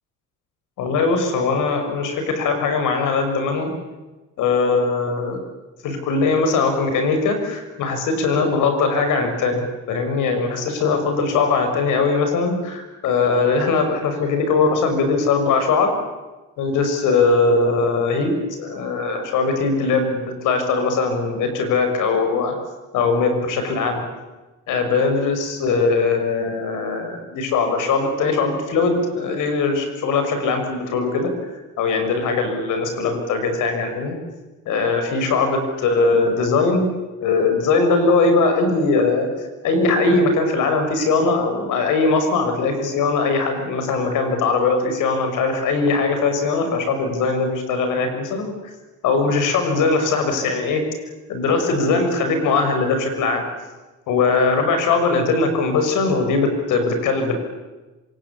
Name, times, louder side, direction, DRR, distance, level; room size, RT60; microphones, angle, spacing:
voice 1, 0.8-3.7 4.4-5.4 5.8-15.9 16.6-22.5 22.9-24.0 24.7-34.2 34.7-36.9 37.2-39.3 39.6-48.5 49.0-50.8 51.3-53.4 54.1-57.4, left 4 dB, 90° left, 7 dB, 6.2 m, -20 dB
26.5 x 26.0 x 8.6 m, 1.2 s
cardioid pair, 90°, 30 cm